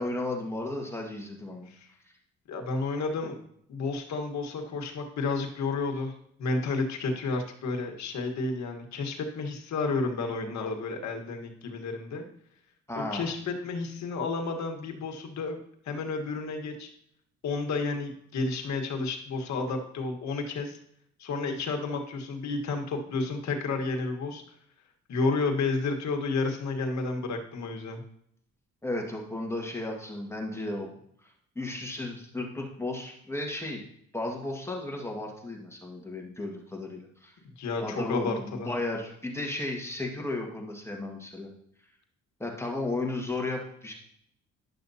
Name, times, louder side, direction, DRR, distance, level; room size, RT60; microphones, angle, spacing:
voice 1, 0.0-1.7 3.2-3.3 12.9-13.3 28.8-30.9 31.2-33.8 34.1-37.3 37.8-41.5 42.4-43.9, left 2 dB, 10° left, 0 dB, 1.5 m, -34 dB
voice 2, 2.5-3.3 3.7-6.1 6.4-12.2 12.9-15.6 15.8-16.9 17.4-20.8 21.2-24.4 25.1-28.0 37.4-38.7, left 3 dB, 65° left, 3 dB, 1.4 m, -31 dB
11.0 x 6.6 x 2.7 m, 0.70 s
cardioid pair, 90°, 30 cm